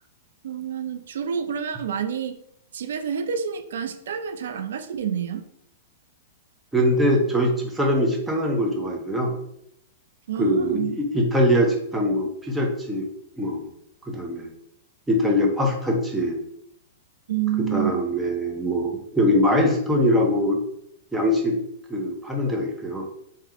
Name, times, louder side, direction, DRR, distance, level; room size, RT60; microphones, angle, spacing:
voice 1, 0.4-2.4 2.7-5.4 10.3-10.9 17.3-18.0, right 8 dB, 80° right, 9 dB, 0.4 m, -28 dB
voice 2, 6.7-9.3 10.4-13.1 13.4-13.7 14.1-14.5 15.1-16.4 17.7-20.6 21.1-21.6 21.9-23.1, equal, 5° right, 1 dB, 0.6 m, -22 dB
3.5 x 2.8 x 3.4 m, 0.73 s
hypercardioid pair, 150°, 0 cm